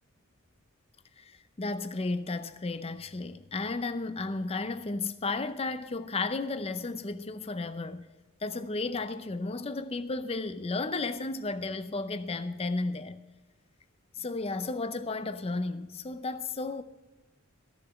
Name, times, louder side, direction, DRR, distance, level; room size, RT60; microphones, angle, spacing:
voice 1, 1.2-8.1 8.4-13.2 14.2-16.8, left 3 dB, 25° left, 0.5 m, -33 dB
14.0 x 7.0 x 7.0 m
head